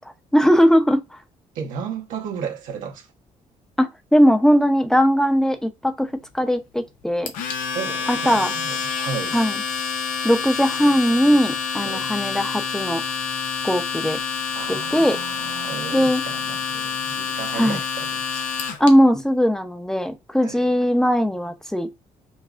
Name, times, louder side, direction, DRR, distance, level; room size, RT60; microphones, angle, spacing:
voice 1, 0.3-1.2 3.8-6.1 6.3-7.3 8.1-8.5 9.3-9.6 10.2-13.0 13.6-14.2 14.7-15.2 15.9-16.2 17.5-17.8 18.8-21.9, equal, 5° left, 0.6 m, -19 dB
voice 2, 1.5-3.1 7.7-9.4 11.8-12.1 14.5-18.2 20.4-20.7, right 6 dB, 80° right, 1.1 m, -34 dB
Domestic sounds home sounds, 7.3-18.9, left 6 dB, 90° left, 0.7 m, -28 dB
5.5 x 2.4 x 2.4 m
cardioid pair, 90°, 13 cm